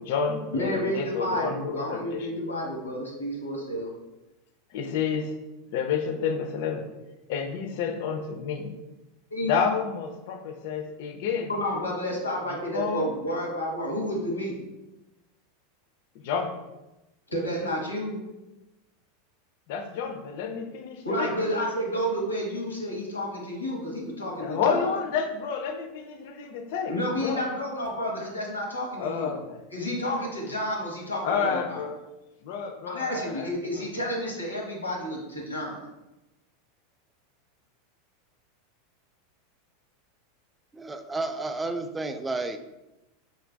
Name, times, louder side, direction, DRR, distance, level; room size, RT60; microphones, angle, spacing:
voice 1, 0.0-2.3 4.7-5.4 5.7-6.9 7.3-8.8 9.4-11.5 12.5-13.1 16.2-16.5 19.7-21.3 24.4-27.0 27.2-27.4 29.0-29.6 31.2-32.0 32.4-33.8, left 6 dB, 55° left, 5 dB, 0.5 m, -30 dB
voice 2, 0.5-3.9 9.3-9.5 11.5-14.6 17.3-18.2 21.0-24.8 26.9-29.3 29.7-31.8 32.9-35.8, equal, 85° left, -1 dB, 1.0 m, -30 dB
voice 3, 40.7-42.6, right 3 dB, 15° right, 8 dB, 0.3 m, -31 dB
4.9 x 3.3 x 2.2 m, 0.99 s
figure-of-eight pair, 85°, 0 cm